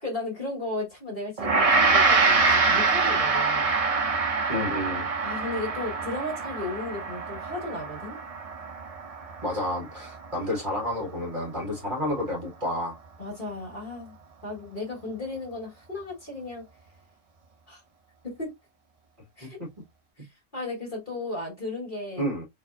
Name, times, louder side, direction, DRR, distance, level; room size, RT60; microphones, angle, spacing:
voice 1, 0.0-3.7 5.2-8.2 13.2-14.1 14.4-16.6 17.7-17.8 18.2-18.5 19.4-19.6 20.2-20.3 20.5-22.3, left 2 dB, 35° left, 1.5 m, -35 dB
Gong, 1.4-10.8, right 4 dB, 55° right, 0.3 m, -25 dB
voice 2, 4.5-5.1 9.4-13.0 19.4-19.5 22.2-22.4, left 1 dB, 35° right, 1.5 m, -30 dB
4.2 x 3.1 x 2.4 m
omnidirectional pair, 1.5 m